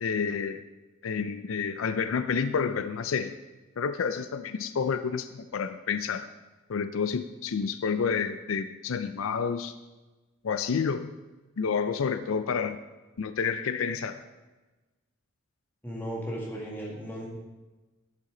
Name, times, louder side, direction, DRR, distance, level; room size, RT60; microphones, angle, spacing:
voice 1, 0.0-0.6 1.0-3.3 3.8-6.3 6.7-9.7 10.4-11.1 11.6-12.8 13.2-14.2, left 6 dB, 80° left, 11 dB, 0.4 m, -29 dB
voice 2, 15.8-17.3, equal, 10° left, -4 dB, 2.0 m, -35 dB
10.5 x 8.3 x 3.8 m, 1.2 s
head